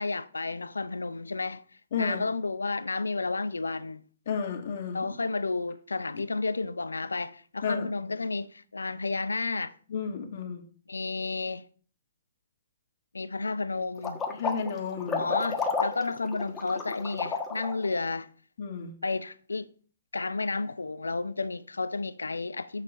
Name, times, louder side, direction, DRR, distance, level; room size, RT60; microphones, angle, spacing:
voice 1, 0.0-1.6 2.0-4.0 4.9-9.7 10.9-11.7 13.1-14.2 15.2-18.3 19.0-19.7 20.1-22.8, left 3 dB, 90° left, 0.6 m, -31 dB
voice 2, 1.9-2.2 4.3-5.1 6.1-6.2 7.6-7.9 9.9-10.7 14.3-15.3 18.6-19.0, left 5 dB, 55° left, 1.8 m, -32 dB
sound 1, 14.0-17.9, left 5 dB, 15° left, 1.4 m, -31 dB
7.6 x 6.7 x 4.1 m
hypercardioid pair, 125°, 0 cm